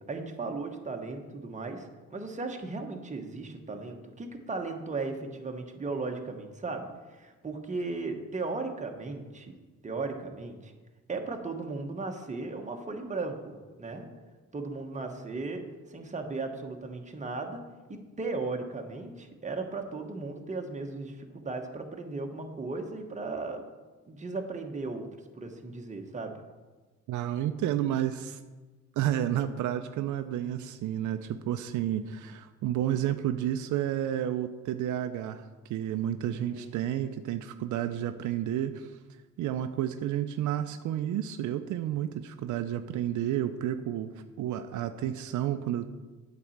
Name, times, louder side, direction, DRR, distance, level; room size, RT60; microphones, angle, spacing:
voice 1, 0.0-9.5 9.8-10.7 11.1-14.1 14.5-15.6 15.9-17.6 17.9-23.6 24.1-25.1 25.4-26.3 36.3-36.8, right 3 dB, 25° right, 3 dB, 1.2 m, -36 dB
voice 2, 27.1-28.4 29.0-39.0 39.4-45.9, right 11 dB, 75° right, 9 dB, 0.5 m, -31 dB
8.4 x 4.2 x 7.2 m, 1.3 s
cardioid pair, 90°, 30 cm